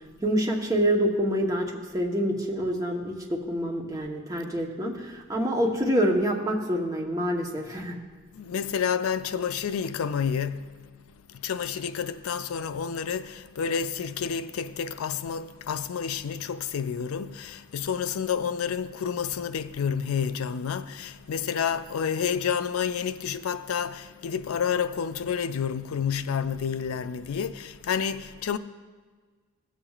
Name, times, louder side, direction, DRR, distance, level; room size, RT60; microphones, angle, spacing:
voice 1, 0.2-8.0, equal, 15° right, 1.0 m, -26 dB
voice 2, 8.3-10.9 11.3-28.6, left 7 dB, 85° left, 0.4 m, -29 dB
16.0 x 7.1 x 2.4 m
head